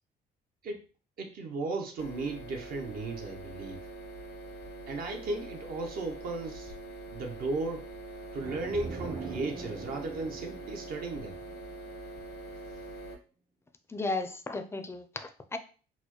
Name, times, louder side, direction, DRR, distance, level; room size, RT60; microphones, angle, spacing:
voice 1, 1.2-3.9 4.9-6.7 7.1-7.9 8.3-11.4, right 3 dB, 60° right, 3 dB, 0.7 m, -35 dB
sound 1, 2.0-13.1, right 2 dB, 90° left, 0.8 m, -44 dB
sound 2, 8.4-12.1, right 4 dB, 30° right, 0.7 m, -42 dB
voice 2, 13.9-15.6, left 3 dB, 15° left, 9 dB, 0.4 m, -35 dB
4.0 x 2.2 x 3.0 m, 0.38 s
cardioid pair, 110°, 17 cm